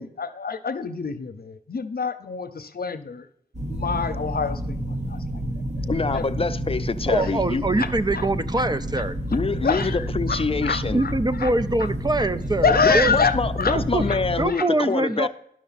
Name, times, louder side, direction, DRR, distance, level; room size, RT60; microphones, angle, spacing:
voice 1, 0.0-3.2 3.6-4.8 6.1-6.2 7.1-7.2 8.2-8.3 9.6-10.0 10.3-10.8 11.4-11.5 12.6-13.8 14.1-14.2 14.5-14.6, left 5 dB, 80° left, 0.7 m, -25 dB
sound 1, 3.5-14.5, equal, 50° right, 1.1 m, -29 dB
voice 2, 5.9-7.6 9.3-11.0 12.8-15.3, left 4 dB, 40° left, 0.5 m, -25 dB
voice 3, 7.1-9.2 10.9-13.2 13.7-14.0 14.4-15.3, right 2 dB, 25° right, 0.4 m, -24 dB
11.0 x 6.2 x 4.1 m
wide cardioid pair, 80°, 16 cm